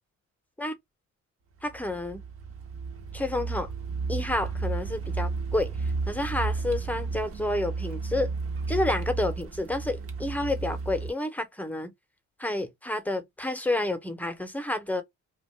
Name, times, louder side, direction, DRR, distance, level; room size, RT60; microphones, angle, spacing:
voice 1, 1.6-2.2 3.1-3.7 4.1-8.3 8.7-11.9 12.4-15.0, left 2 dB, 5° left, 0.7 m, -30 dB
Car, 1.6-11.1, right 4 dB, 50° right, 0.9 m, -33 dB
2.5 x 2.2 x 3.1 m
cardioid pair, 90°, 30 cm